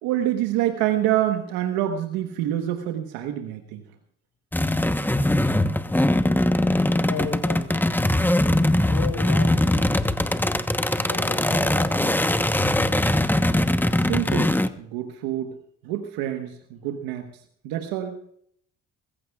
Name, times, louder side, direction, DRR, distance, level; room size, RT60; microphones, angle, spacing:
voice 1, 0.0-3.8 14.1-14.5 14.8-15.6 15.8-17.3 17.6-18.2, right 12 dB, 85° right, 6 dB, 1.3 m, -26 dB
sound 1, 4.5-14.7, left 1 dB, 5° left, 1.0 m, -21 dB
voice 2, 6.9-7.7 8.8-9.9 11.1-12.3, left 6 dB, 65° left, 2 dB, 3.2 m, -35 dB
23.5 x 15.5 x 2.4 m, 0.65 s
supercardioid pair, 65°, 35 cm